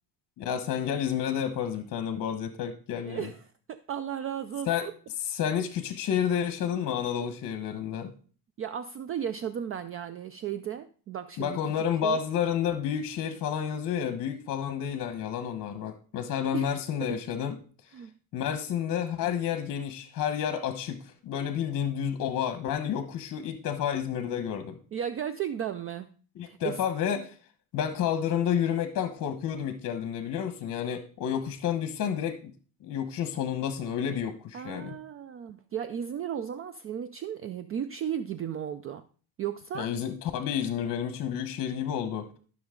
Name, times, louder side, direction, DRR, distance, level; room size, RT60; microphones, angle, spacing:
voice 1, 0.4-3.3 4.7-4.8 5.2-8.1 11.4-17.6 18.3-24.8 26.4-27.4 27.7-32.5 32.8-35.0 39.7-42.3, left 8 dB, 45° left, 8 dB, 1.1 m, -30 dB
voice 2, 3.0-3.4 3.7-4.9 8.6-12.2 16.5-16.7 17.9-18.1 24.9-26.1 26.5-26.7 34.5-39.0 39.4-39.9, right 9 dB, 35° right, 12 dB, 0.4 m, -35 dB
13.5 x 6.2 x 3.7 m, 0.41 s
cardioid pair, 140°, 44 cm